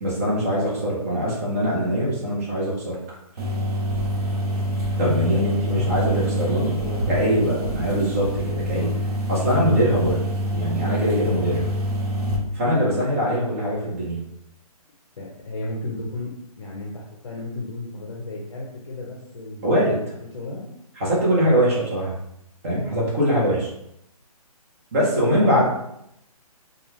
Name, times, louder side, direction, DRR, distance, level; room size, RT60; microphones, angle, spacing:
voice 1, 0.0-3.0 5.0-6.8 7.1-8.9 9.3-10.2 10.5-11.7 12.5-14.2 19.6-20.0 21.0-22.1 22.6-23.7 24.9-25.6, equal, 20° right, -5 dB, 0.7 m, -22 dB
sound 1, 3.4-12.4, equal, 80° right, 0.8 m, -26 dB
voice 2, 5.0-5.4 5.7-7.3 7.5-8.4 8.7-9.0 11.4-11.6 12.8-13.1 15.2-16.3 16.6-19.6 20.2-20.7 21.3-21.5 25.3-25.6, left 2 dB, 50° left, -3 dB, 0.6 m, -34 dB
2.3 x 2.3 x 3.1 m, 0.77 s
hypercardioid pair, 160°, 19 cm